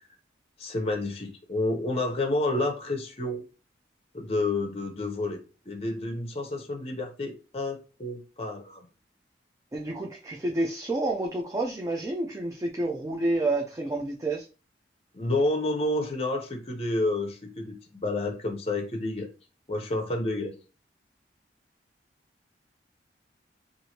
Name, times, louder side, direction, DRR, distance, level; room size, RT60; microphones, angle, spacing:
voice 1, 0.6-3.4 4.1-5.4 5.7-8.8 15.1-19.3 19.7-20.5, left 2 dB, 35° left, 0.6 m, -29 dB
voice 2, 9.7-14.5, right 2 dB, 20° right, 0.3 m, -29 dB
3.0 x 2.5 x 2.8 m
head